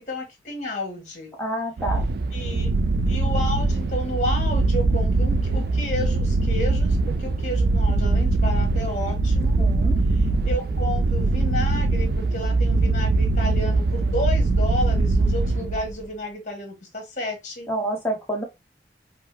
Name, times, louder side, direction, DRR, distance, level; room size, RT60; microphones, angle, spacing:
voice 1, 0.0-1.3 2.3-2.7 3.1-9.6 10.1-17.7, left 1 dB, 45° left, 1.3 m, -31 dB
voice 2, 1.4-2.1 9.6-10.0 17.7-18.4, right 1 dB, 10° left, 0.9 m, -28 dB
sound 1, 1.8-16.0, right 3 dB, 60° right, 0.3 m, -22 dB
4.5 x 2.0 x 2.2 m
head